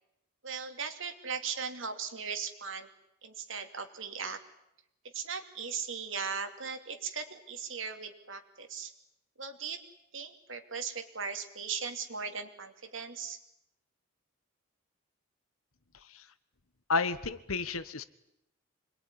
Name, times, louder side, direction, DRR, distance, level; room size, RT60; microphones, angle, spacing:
voice 1, 0.4-2.9 3.2-4.4 5.1-8.9 9.4-9.8 10.1-13.4, right 6 dB, 65° right, 7 dB, 2.7 m, -38 dB
voice 2, 16.9-18.0, left 4 dB, 80° left, 13 dB, 1.4 m, -31 dB
26.5 x 21.5 x 9.8 m, 0.84 s
head